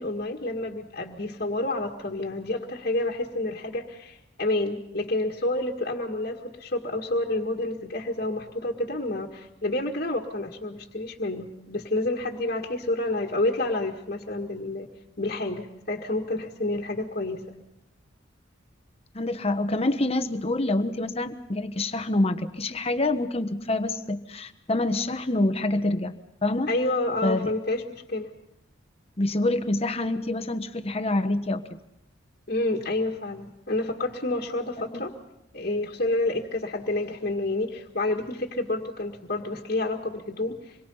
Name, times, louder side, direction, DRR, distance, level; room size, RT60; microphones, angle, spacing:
voice 1, 0.0-14.9 15.2-17.4 26.7-28.3 32.5-35.1 35.5-40.9, left 2 dB, 50° left, -1 dB, 1.9 m, -29 dB
voice 2, 19.1-26.7 27.2-27.5 29.2-31.8 34.9-35.0, left 2 dB, 30° left, 9 dB, 1.2 m, -26 dB
26.5 x 22.5 x 5.6 m, 0.83 s
head